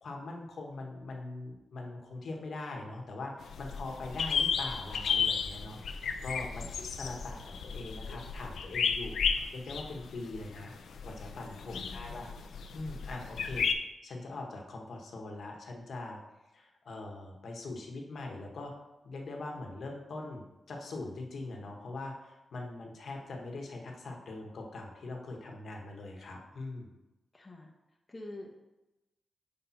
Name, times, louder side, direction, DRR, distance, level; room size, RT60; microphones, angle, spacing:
voice 1, 0.0-10.7 11.0-12.3 12.7-13.7 14.0-16.2 16.5-18.7 19.0-26.9, left 2 dB, 65° left, 1 dB, 1.1 m, -42 dB
sound 1, 3.4-13.7, left 6 dB, 90° left, 0.4 m, -33 dB
voice 2, 11.7-12.2 27.3-27.7 28.1-28.7, left 2 dB, 20° left, 0 dB, 0.8 m, -47 dB
5.2 x 4.2 x 5.7 m, 1.0 s
wide cardioid pair, 140°, 0 cm